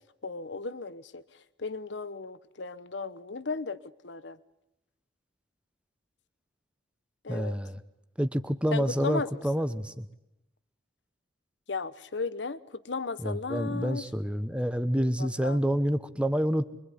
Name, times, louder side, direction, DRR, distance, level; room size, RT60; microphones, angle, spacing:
voice 1, 0.2-4.4 7.2-7.6 8.7-9.6 11.7-14.1 15.2-15.6, left 4 dB, 75° left, 16 dB, 1.0 m, -36 dB
voice 2, 7.3-7.8 8.2-10.1 13.2-16.7, equal, 5° right, 11 dB, 1.1 m, -28 dB
25.5 x 23.5 x 9.9 m, 0.88 s
head